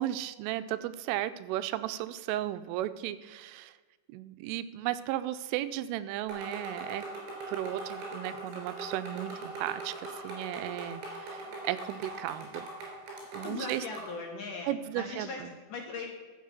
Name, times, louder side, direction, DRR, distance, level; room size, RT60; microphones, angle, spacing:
voice 1, 0.0-3.7 4.1-7.1 7.5-12.7 13.3-13.9 14.7-15.5, right 13 dB, 85° right, 12 dB, 3.2 m, -35 dB
sound 1, 6.3-14.2, right 2 dB, 70° right, 5.7 m, -41 dB
voice 2, 13.4-14.7 15.0-15.4 15.7-16.1, left 3 dB, 60° left, -1 dB, 2.4 m, -38 dB
13.5 x 7.4 x 7.1 m, 1.4 s
omnidirectional pair, 5.6 m